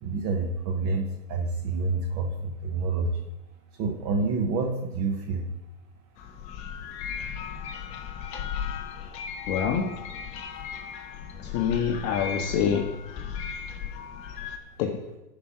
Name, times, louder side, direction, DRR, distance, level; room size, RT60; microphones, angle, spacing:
voice 1, 0.0-3.2 3.8-5.4, right 3 dB, 30° right, 4 dB, 0.8 m, -28 dB
sound 1, 6.2-14.6, left 7 dB, 15° left, 0.4 m, -36 dB
voice 2, 9.5-9.9 11.4-12.9 14.8-15.0, left 7 dB, 35° left, 2 dB, 0.9 m, -26 dB
12.0 x 4.9 x 5.8 m, 0.99 s
hypercardioid pair, 125°, 49 cm